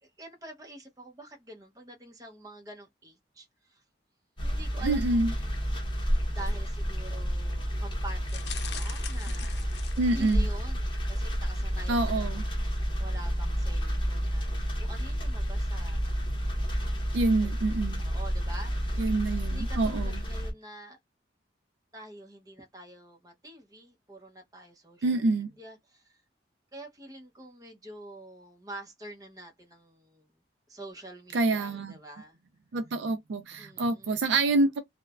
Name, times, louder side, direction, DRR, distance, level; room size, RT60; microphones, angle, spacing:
voice 1, 0.0-3.8 4.4-5.5 6.3-9.9 10.1-16.4 17.4-19.2 19.5-21.0 21.9-26.2 26.7-30.3 30.7-32.4 33.6-34.3, right 1 dB, 20° right, 0.7 m, -47 dB
sound 1, 4.4-20.5, equal, 25° left, 0.8 m, -30 dB
voice 2, 4.8-5.3 10.0-10.5 11.9-12.4 17.1-18.0 19.0-20.2 25.0-25.5 31.3-32.0 32.7-34.8, right 2 dB, 75° right, 0.4 m, -27 dB
sound 2, 8.3-10.6 11.1-11.4 11.6-11.7, left 8 dB, 65° left, 0.6 m, -42 dB
3.1 x 2.1 x 2.3 m
head